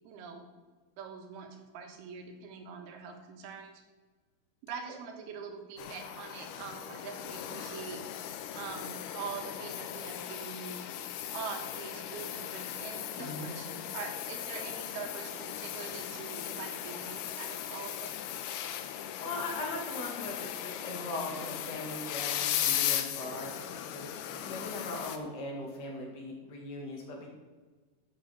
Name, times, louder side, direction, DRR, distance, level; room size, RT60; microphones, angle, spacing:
voice 1, 0.0-0.4 1.0-3.8 4.6-8.0 8.5-10.8 11.3-18.2, right 6 dB, 90° right, 4 dB, 3.3 m, -43 dB
sound 1, 5.8-25.2, left 10 dB, 75° left, 2.1 m, -37 dB
voice 2, 13.2-13.5 19.2-27.3, left 2 dB, 35° left, -1 dB, 2.3 m, -40 dB
12.0 x 8.1 x 4.8 m, 1.4 s
omnidirectional pair, 4.3 m